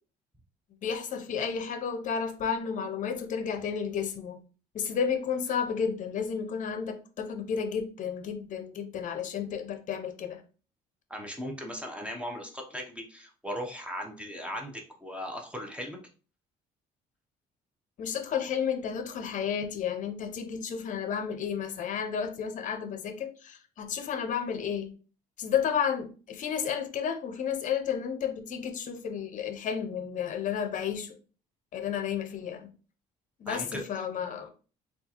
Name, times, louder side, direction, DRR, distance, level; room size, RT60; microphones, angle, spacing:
voice 1, 0.8-4.4 4.7-10.4 18.0-24.9 25.4-31.2 31.7-32.7 33.4-34.5, left 7 dB, 50° left, 0.6 m, -32 dB
voice 2, 11.1-16.0 33.5-33.8, equal, 5° right, 0.7 m, -38 dB
3.6 x 2.4 x 2.8 m
cardioid pair, 110°, 17 cm